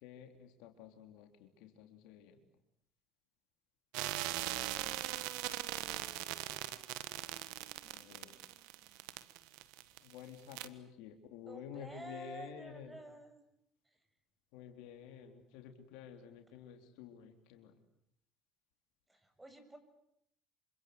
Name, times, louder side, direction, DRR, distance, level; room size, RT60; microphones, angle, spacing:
voice 1, 0.0-2.4 7.8-8.3 10.0-13.0 14.5-17.8, left 8 dB, 75° left, 5 dB, 3.5 m, -51 dB
sound 1, 3.9-10.2 10.5-10.7, right 16 dB, 75° right, 1.4 m, -40 dB
voice 2, 11.5-13.4 19.1-19.8, right 1 dB, 10° right, 7 dB, 7.1 m, -50 dB
27.0 x 25.5 x 8.1 m, 0.75 s
supercardioid pair, 80°, 0 cm